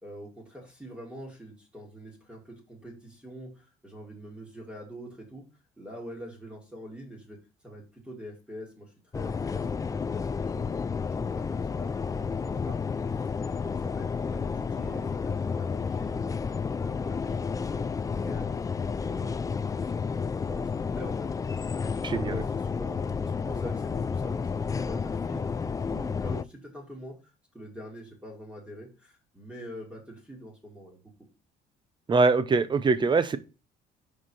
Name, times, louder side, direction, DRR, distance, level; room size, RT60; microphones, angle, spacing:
voice 1, 0.0-5.4 5.8-16.3 16.8-18.7 18.9-27.2 27.5-31.1, equal, 5° right, 2.5 m, -45 dB
sound 1, 9.1-26.4, left 5 dB, 20° left, 0.3 m, -31 dB
voice 2, 22.0-22.4 32.1-33.4, right 4 dB, 25° right, 0.7 m, -23 dB
5.1 x 4.7 x 5.6 m
cardioid pair, 110°, 17 cm